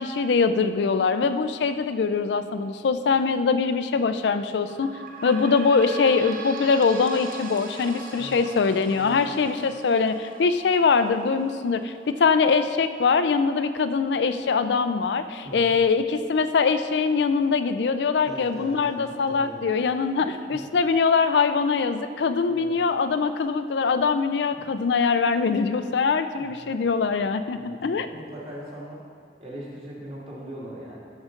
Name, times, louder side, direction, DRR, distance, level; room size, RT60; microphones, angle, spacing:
voice 1, 0.0-4.9 5.2-28.1, left 5 dB, 75° left, 10 dB, 0.4 m, -23 dB
sound 1, 4.6-17.7 18.3-18.4 18.7-18.8 19.6-19.7, right 4 dB, 50° right, 0.8 m, -43 dB
voice 2, 8.9-9.5 15.4-15.7 18.2-19.6 20.2-20.6 22.5-22.8 24.5-24.7 26.4-26.7 27.5-29.0 29.4-31.0, equal, 35° right, -6 dB, 2.2 m, -40 dB
12.5 x 6.3 x 3.8 m, 2.1 s
head